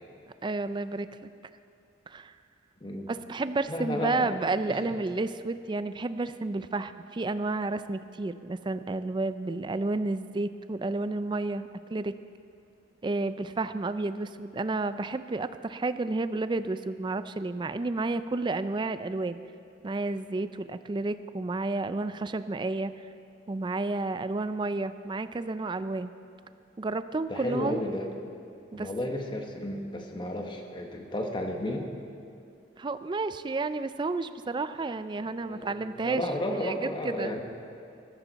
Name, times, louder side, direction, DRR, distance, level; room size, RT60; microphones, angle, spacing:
voice 1, 0.4-1.1 2.1-2.3 3.1-12.1 13.0-19.4 19.8-22.9 23.5-26.1 26.8-27.8 28.7-28.9 32.8-36.2 36.5-37.3, right 3 dB, 25° right, 12 dB, 0.4 m, -31 dB
voice 2, 3.7-4.4 4.7-4.8 27.3-28.1 28.7-31.9 35.5-37.4, left 1 dB, 25° left, 3 dB, 1.2 m, -33 dB
14.5 x 14.0 x 4.1 m, 2.6 s
head